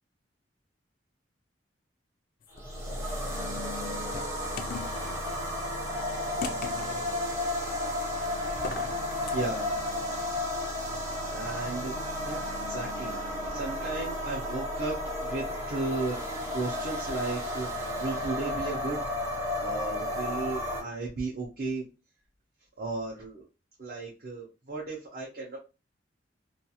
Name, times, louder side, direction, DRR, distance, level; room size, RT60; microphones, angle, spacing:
sound 1, 2.4-3.0 3.7-5.2 6.4-7.2 8.5-9.4, left 5 dB, 50° left, 0.3 m, -39 dB
sound 2, 2.5-20.8, left 1 dB, 15° right, 0.7 m, -33 dB
voice 1, 9.3-9.8 11.3-11.9 12.2-13.2 13.4-17.7 18.0-19.0 19.6-21.8 22.8-23.4 23.8-25.6, right 3 dB, 50° right, -3 dB, 0.6 m, -35 dB
2.4 x 2.3 x 2.8 m, 0.30 s
head